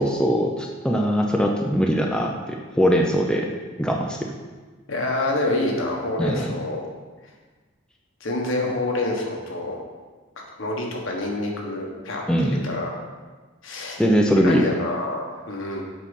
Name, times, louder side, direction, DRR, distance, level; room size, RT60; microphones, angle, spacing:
voice 1, 0.0-3.5 3.8-4.3 6.2-6.5 12.3-12.7 14.0-14.6, equal, 5° left, 0 dB, 0.5 m, -21 dB
voice 2, 4.9-6.8 8.2-9.8 10.6-12.9 13.6-14.0 14.4-15.8, left 2 dB, 75° left, -1 dB, 1.4 m, -27 dB
7.4 x 4.2 x 5.3 m, 1.3 s
head